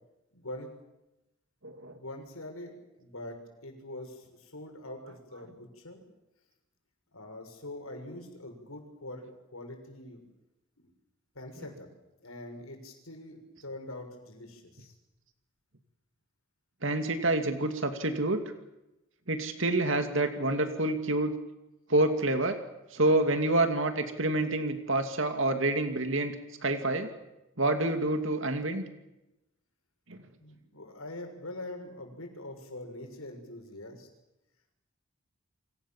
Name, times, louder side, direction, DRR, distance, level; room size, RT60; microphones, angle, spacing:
voice 1, 0.3-0.7 1.9-6.0 7.1-9.2 9.5-10.2 10.8-10.9 11.3-11.9 12.2-14.9 30.4-34.1, left 1 dB, 80° left, 5 dB, 6.5 m, -44 dB
voice 2, 1.6-2.0 5.1-5.2 11.6-11.7 16.8-18.4 19.3-21.4 21.9-22.6 22.9-26.3 26.6-27.1 27.6-28.8 30.1-30.2, right 2 dB, 60° right, 7 dB, 2.6 m, -28 dB
29.5 x 25.0 x 7.4 m, 0.94 s
head